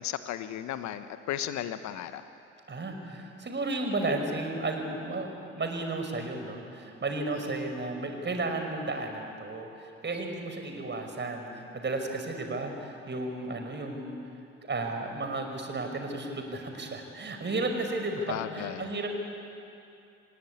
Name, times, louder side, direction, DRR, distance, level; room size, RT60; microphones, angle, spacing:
voice 1, 0.0-2.2 18.3-18.9, left 11 dB, 60° left, 11 dB, 1.2 m, -35 dB
voice 2, 2.7-14.2 14.7-19.1, right 2 dB, 35° right, 4 dB, 5.5 m, -33 dB
27.5 x 18.5 x 9.7 m, 2.7 s
figure-of-eight pair, 50°, 33 cm